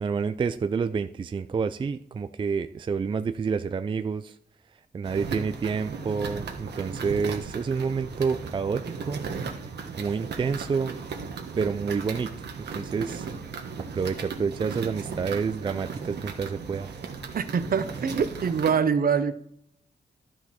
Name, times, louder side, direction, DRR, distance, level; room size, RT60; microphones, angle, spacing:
voice 1, 0.0-4.4 4.9-9.2 10.0-11.0 11.6-13.3 13.9-16.9, right 5 dB, 30° right, 10 dB, 0.3 m, -29 dB
sound 1, 5.0-18.7, right 5 dB, 75° right, 1.4 m, -36 dB
voice 2, 17.4-19.3, right 6 dB, 60° right, 12 dB, 0.8 m, -24 dB
12.0 x 6.2 x 4.3 m, 0.70 s
wide cardioid pair, 125°, 17 cm